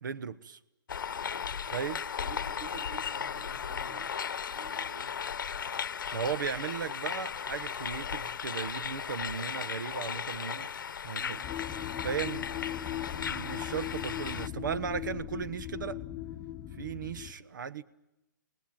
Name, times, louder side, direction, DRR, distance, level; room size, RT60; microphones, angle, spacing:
voice 1, 0.0-0.6 1.7-2.0 6.1-10.7 11.0-11.4 12.0-12.5 13.3-16.0 16.8-17.8, right 7 dB, 75° right, 1.3 m, -36 dB
sound 1, 0.9-14.5, left 7 dB, 85° left, 0.9 m, -36 dB
voice 2, 2.2-4.3 4.5-5.2 11.2-11.5, right 5 dB, 35° right, 4.7 m, -49 dB
sound 2, 11.4-17.3, left 12 dB, 15° left, 2.2 m, -39 dB
28.5 x 19.5 x 8.8 m
hypercardioid pair, 165°, 11 cm